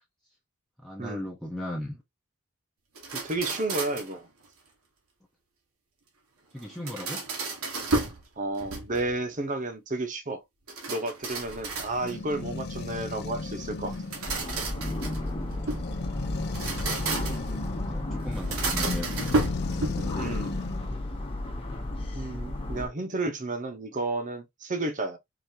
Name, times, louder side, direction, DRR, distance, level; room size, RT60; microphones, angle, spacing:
voice 1, 0.8-2.0 6.5-7.2 17.2-19.5, left 1 dB, ahead, 0.7 m, -37 dB
sound 1, 3.0-4.2 6.6-8.2 8.6-9.2 10.7-12.3 13.9-15.9 16.4-17.6 18.3-20.2, right 3 dB, 80° right, 1.4 m, -32 dB
voice 2, 3.1-4.3 8.4-10.4 10.9-13.9 20.1-20.5 22.1-25.2, right 2 dB, 35° right, 0.9 m, -32 dB
sound 2, 11.2-20.9, left 3 dB, 50° left, 0.5 m, -36 dB
sound 3, 14.3-22.9, left 1 dB, 25° left, 1.2 m, -33 dB
4.9 x 2.7 x 2.8 m
head